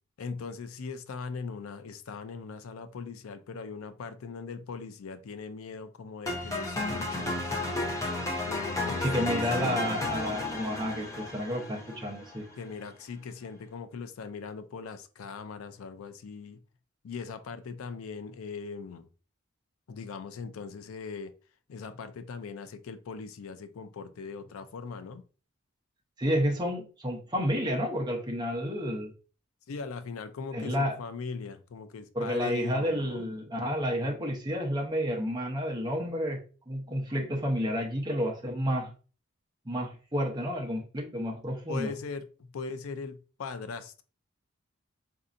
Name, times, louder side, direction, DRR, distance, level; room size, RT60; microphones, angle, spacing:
voice 1, 0.2-7.9 8.4-10.0 12.6-16.6 17.0-19.1 19.9-21.3 21.7-25.2 29.7-33.3 41.7-44.0, left 5 dB, 80° left, 0.4 m, -40 dB
sound 1, 6.3-12.4, left 2 dB, 15° left, 0.6 m, -33 dB
voice 2, 9.0-12.5 26.2-29.1 30.5-30.9 32.1-38.9 39.6-41.9, equal, 20° right, 0.7 m, -30 dB
4.2 x 2.7 x 2.5 m
head